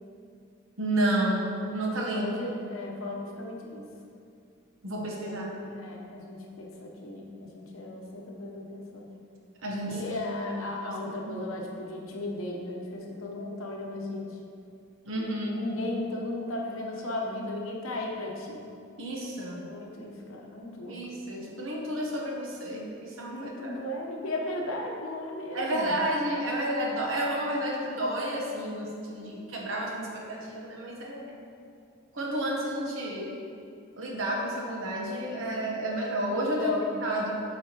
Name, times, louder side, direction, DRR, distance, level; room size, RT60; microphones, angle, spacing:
voice 1, 0.8-2.3 4.8-5.5 9.6-10.1 10.8-11.4 15.0-15.5 19.0-19.7 20.9-23.8 25.5-31.4 32.1-33.5 34.0-36.7 37.0-37.4, right 1 dB, 70° right, -1 dB, 1.1 m, -31 dB
voice 2, 2.1-3.9 5.2-9.1 9.9-14.4 15.2-18.7 19.7-21.0 23.3-25.9 29.0-29.6 36.3-36.9, left 2 dB, 80° left, 0 dB, 0.9 m, -36 dB
8.4 x 4.7 x 3.0 m, 2.5 s
head